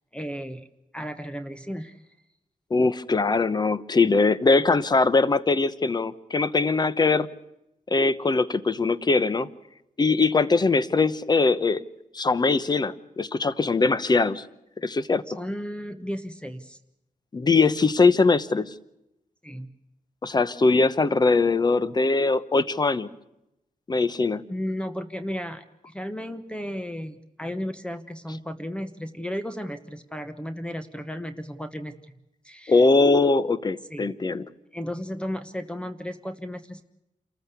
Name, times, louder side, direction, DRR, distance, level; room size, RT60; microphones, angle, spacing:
voice 1, 0.1-0.7 0.9-2.0 15.4-16.8 19.4-19.7 24.5-31.9 32.4-32.8 33.9-34.1 34.7-36.8, equal, 5° left, 10 dB, 1.1 m, -34 dB
voice 2, 2.7-7.3 7.9-9.5 10.0-11.8 12.1-14.5 14.8-15.4 17.3-18.7 20.2-23.1 23.9-24.4 32.7-34.5, left 3 dB, 30° left, 16 dB, 0.9 m, -21 dB
27.5 x 14.5 x 8.3 m, 0.88 s
wide cardioid pair, 110°, 14 cm